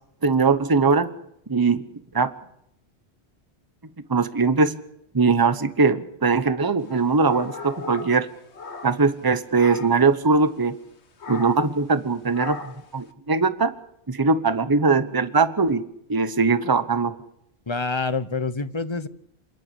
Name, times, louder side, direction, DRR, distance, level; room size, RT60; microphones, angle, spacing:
voice 1, 0.2-1.1 1.5-1.8 2.1-2.3 4.1-4.7 5.1-8.3 8.8-10.8 11.3-13.7 14.1-15.8 16.1-17.1, right 4 dB, 20° right, 13 dB, 1.0 m, -21 dB
sound 1, 6.8-9.2 9.5-10.1 11.2-11.8 12.3-12.9, left 5 dB, 85° left, 1.7 m, -38 dB
voice 2, 17.7-19.1, left 3 dB, 30° left, 14 dB, 0.9 m, -27 dB
27.5 x 10.5 x 9.8 m, 0.75 s
omnidirectional pair, 1.1 m